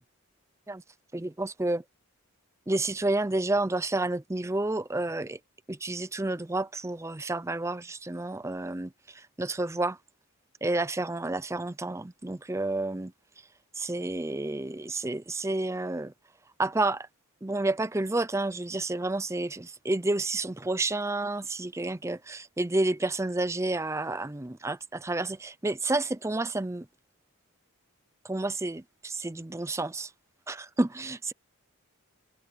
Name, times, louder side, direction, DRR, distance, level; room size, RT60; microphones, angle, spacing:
voice 1, 1.1-1.8 2.7-5.4 5.7-10.0 10.6-13.1 13.8-16.1 16.6-17.1 17.4-26.9 28.2-30.1 30.5-31.3, right 2 dB, 15° right, 0.5 m, -30 dB
head